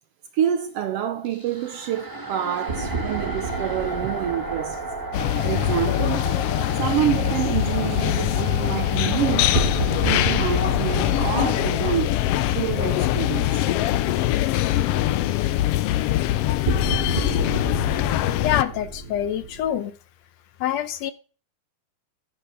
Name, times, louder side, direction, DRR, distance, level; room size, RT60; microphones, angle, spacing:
voice 1, 0.3-4.8 5.4-6.3 6.8-9.6 10.0-12.2 12.5-13.6, right 10 dB, 75° right, 1.5 m, -27 dB
sound 1, 1.2-11.7, right 3 dB, 10° right, 1.0 m, -34 dB
sound 2, 2.7-6.8 9.5-13.9 14.3-14.4 16.6-19.7, right 3 dB, 50° right, 0.7 m, -31 dB
sound 3, 5.1-18.6, left 14 dB, 90° left, 1.3 m, -23 dB
voice 2, 18.4-19.9 20.6-21.1, left 11 dB, 75° left, 1.8 m, -26 dB
10.0 x 9.9 x 3.4 m
omnidirectional pair, 3.3 m